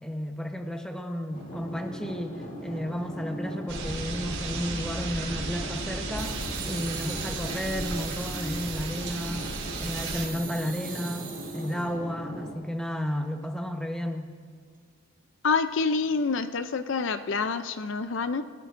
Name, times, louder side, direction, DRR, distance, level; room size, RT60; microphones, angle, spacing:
voice 1, 0.0-9.5 9.8-14.3, equal, 5° left, 4 dB, 1.0 m, -33 dB
sound 1, 1.3-12.5, equal, 40° left, 2.9 m, -39 dB
sound 2, 3.7-10.3, right 3 dB, 80° right, 3.9 m, -35 dB
sound 3, 6.2-11.9, right 8 dB, 40° right, 1.8 m, -41 dB
voice 2, 15.4-18.4, left 4 dB, 60° left, 10 dB, 0.5 m, -27 dB
29.5 x 16.5 x 2.6 m, 2.1 s
head